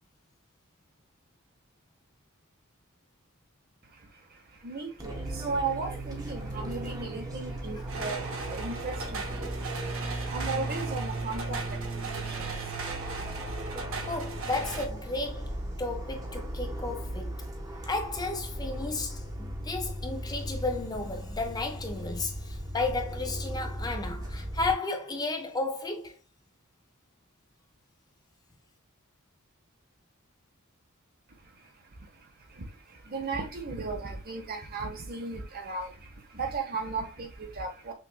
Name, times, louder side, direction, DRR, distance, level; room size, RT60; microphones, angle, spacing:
voice 1, 3.8-13.6 31.4-37.9, right 3 dB, 45° right, 1.0 m, -37 dB
Fixed-wing aircraft airplane, 5.0-24.7, right 1 dB, 20° right, 1.0 m, -37 dB
sound 1, 7.9-14.9, right 3 dB, 65° right, 0.8 m, -38 dB
voice 2, 14.1-17.4 17.9-26.2, left 3 dB, 20° left, 0.6 m, -33 dB
6.0 x 2.5 x 2.3 m
head